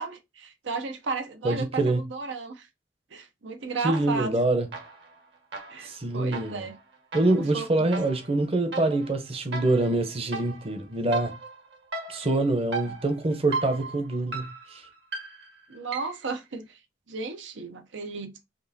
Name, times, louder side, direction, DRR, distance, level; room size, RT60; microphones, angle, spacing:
voice 1, 0.0-2.7 3.1-4.4 5.7-6.8 7.3-7.9 15.7-16.8 17.1-18.3, right 4 dB, 85° right, 0.7 m, -34 dB
voice 2, 1.4-2.0 3.8-4.7 5.8-6.7 7.1-11.3 12.1-14.8, right 2 dB, 30° right, 0.7 m, -25 dB
sound 1, 3.9-4.4 4.7-16.3, right 4 dB, 65° right, 1.4 m, -38 dB
5.2 x 2.4 x 2.7 m
head